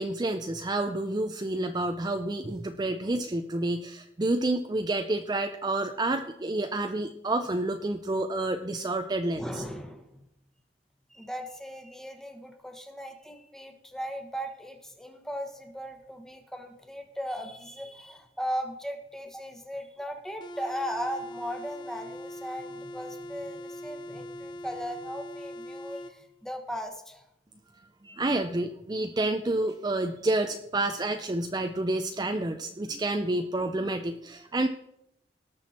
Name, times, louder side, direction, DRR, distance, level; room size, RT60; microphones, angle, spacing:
voice 1, 0.0-9.4 28.0-34.7, right 2 dB, 25° right, 6 dB, 0.5 m, -29 dB
voice 2, 9.3-10.3 11.1-27.2, equal, 5° left, 5 dB, 1.3 m, -37 dB
sound 1, 20.4-26.2, left 1 dB, 25° left, 0.6 m, -41 dB
18.0 x 6.2 x 4.3 m, 0.80 s
head